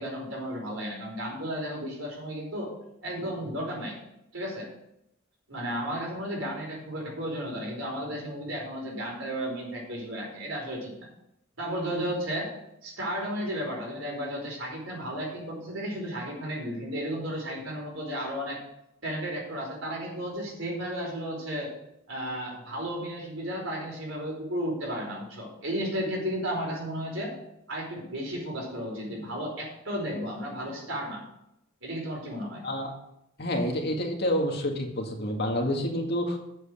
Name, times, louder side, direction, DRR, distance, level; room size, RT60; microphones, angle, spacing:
voice 1, 0.0-2.7 3.0-4.0 4.3-4.7 5.5-11.1 11.6-12.5 12.8-18.6 19.0-21.7 22.1-27.3 27.7-31.2 31.8-32.6, equal, 70° right, -1 dB, 4.7 m, -33 dB
voice 2, 33.4-36.4, equal, 55° left, 2 dB, 1.9 m, -28 dB
8.0 x 8.0 x 6.6 m, 0.81 s
head